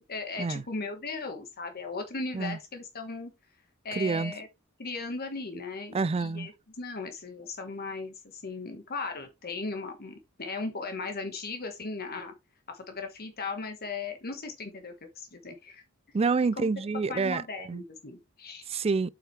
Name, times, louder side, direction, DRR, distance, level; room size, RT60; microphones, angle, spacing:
voice 1, 0.1-3.3 3.8-4.5 4.8-12.3 12.7-15.8 16.6-16.7 17.1-18.7, left 3 dB, 45° left, 1.4 m, -37 dB
voice 2, 3.9-4.3 5.9-6.5 16.1-17.4 17.7-17.8 18.7-19.1, right 4 dB, 30° right, 0.4 m, -27 dB
8.1 x 5.8 x 3.2 m
head